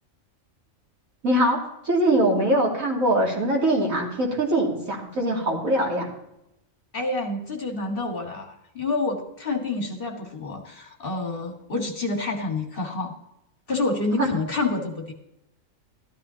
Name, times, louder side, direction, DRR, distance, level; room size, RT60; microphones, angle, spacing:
voice 1, 1.2-6.1 14.1-14.3, right 1 dB, 90° right, -2 dB, 3.1 m, -22 dB
voice 2, 6.9-13.1 13.7-15.1, left 3 dB, 45° left, 2 dB, 1.8 m, -28 dB
13.5 x 13.0 x 2.8 m, 0.83 s
omnidirectional pair, 1.4 m